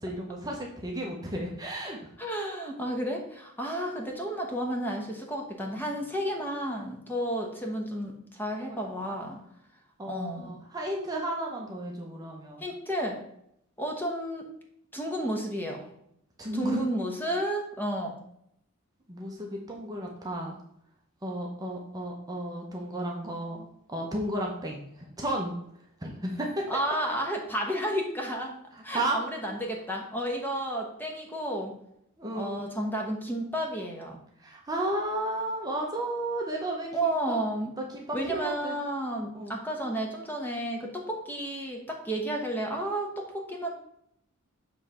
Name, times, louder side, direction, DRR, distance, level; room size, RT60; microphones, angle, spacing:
voice 1, 0.0-2.1 8.6-8.8 9.1-9.2 10.0-12.6 16.4-16.9 19.1-20.6 21.2-25.5 26.0-26.7 28.7-29.2 32.2-32.7 34.4-36.9 37.3-37.4 37.8-38.8 39.3-39.5, right 1 dB, 15° right, -1 dB, 0.9 m, -33 dB
voice 2, 2.2-9.4 10.1-10.5 12.6-13.2 13.8-14.5 14.9-15.9 16.5-18.1 26.7-28.5 28.8-31.7 32.3-34.2 36.9-37.7 38.1-43.7, right 1 dB, 10° left, 1 dB, 1.0 m, -32 dB
7.2 x 3.3 x 5.5 m, 0.74 s
head